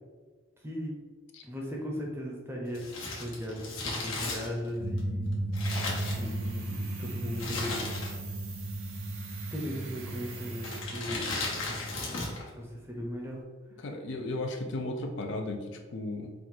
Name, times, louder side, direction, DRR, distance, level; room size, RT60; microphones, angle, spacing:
voice 1, 0.6-1.0 1.4-2.9 3.2-5.4 6.2-7.9 9.5-11.3 12.5-13.4, equal, 10° right, -1 dB, 0.7 m, -37 dB
Crumpling crinkling, 2.7-6.7 7.3-8.4 8.6-8.7 9.6-9.9 10.6-12.5 12.7-12.8, left 2 dB, 85° left, 1.2 m, -36 dB
sound 1, 4.8-12.0, right 1 dB, 40° right, 0.3 m, -36 dB
sound 2, 5.7-10.8, right 5 dB, 85° right, 0.8 m, -47 dB
voice 2, 13.8-16.3, left 2 dB, 65° left, 4 dB, 0.5 m, -35 dB
4.5 x 2.5 x 3.9 m, 1.3 s
head